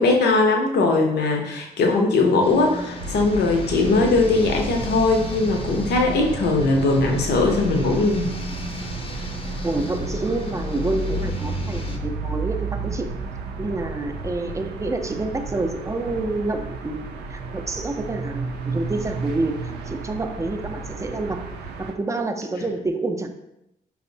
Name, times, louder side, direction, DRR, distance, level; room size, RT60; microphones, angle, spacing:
voice 1, 0.0-8.3, left 3 dB, 75° left, 2 dB, 0.6 m, -20 dB
sound 1, 2.4-12.0, left 2 dB, 30° left, 0.5 m, -36 dB
sound 2, 3.0-21.9, right 3 dB, 80° right, 0.4 m, -32 dB
voice 2, 9.6-13.1 13.6-21.5 21.8-23.3, right 2 dB, 20° right, 6 dB, 0.4 m, -28 dB
4.2 x 2.0 x 2.6 m, 0.84 s
cardioid pair, 65°, 17 cm